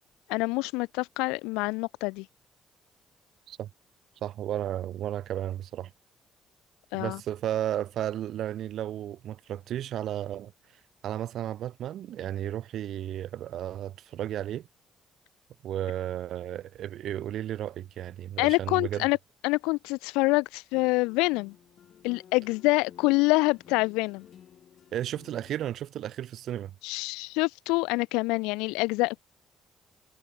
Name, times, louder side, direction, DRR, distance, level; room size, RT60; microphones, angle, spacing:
voice 1, 0.3-2.3 6.9-7.2 18.4-19.2 19.4-21.5 22.0-24.2 26.8-29.2, left 25 dB, 80° left, 0.3 m, -26 dB
voice 2, 4.2-5.9 6.9-10.5 11.0-14.7 15.6-19.0 24.9-26.7, right 11 dB, 65° right, 0.8 m, -33 dB
sound 1, 20.7-25.7, left 9 dB, 60° left, 3.7 m, -54 dB
hypercardioid pair, 45°, 0 cm